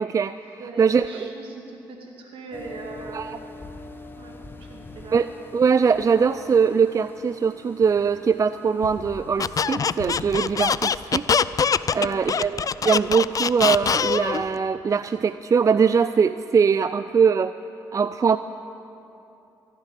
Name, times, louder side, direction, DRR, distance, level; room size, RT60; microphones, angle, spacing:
voice 1, 0.0-1.3 3.1-3.4 5.1-11.2 11.9-17.5 17.9-18.4, right 6 dB, 35° right, 13 dB, 0.4 m, -22 dB
voice 2, 0.6-3.3 4.1-5.2 11.9-12.2, right 3 dB, 65° right, 1 dB, 2.3 m, -40 dB
sound 1, 2.5-10.2, left 2 dB, 20° left, 1.2 m, -44 dB
sound 2, 7.8-8.0 8.8-9.1 10.0-10.2 11.3-11.5 12.2-12.4 13.8-14.0, left 4 dB, 85° left, 1.4 m, -42 dB
Squeak, 9.4-14.4, left 6 dB, 40° left, 0.4 m, -23 dB
15.5 x 7.5 x 9.2 m, 2.9 s
hypercardioid pair, 50°, 10 cm